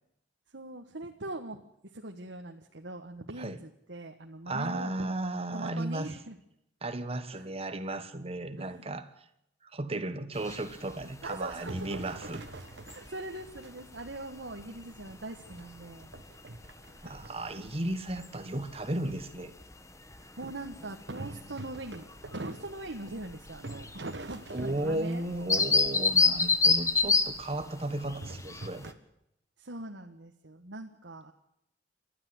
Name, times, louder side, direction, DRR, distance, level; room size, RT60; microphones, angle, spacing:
voice 1, 0.5-5.1 5.5-6.4 7.3-7.5 8.6-8.9 11.2-12.2 12.9-16.1 17.5-17.8 20.1-25.7 29.6-31.3, right 2 dB, 90° right, 1.5 m, -42 dB
voice 2, 4.5-6.1 6.8-9.1 9.6-12.4 17.0-19.5 24.5-28.8, right 1 dB, 35° right, 1.5 m, -35 dB
sound 1, 10.3-28.9, left 4 dB, 15° left, 1.3 m, -33 dB
sound 2, 11.4-14.1 14.6-14.7 15.3-17.5 21.2-23.3 23.6-25.4 28.2-28.9, right 2 dB, 75° right, 1.5 m, -45 dB
29.0 x 13.0 x 8.0 m
head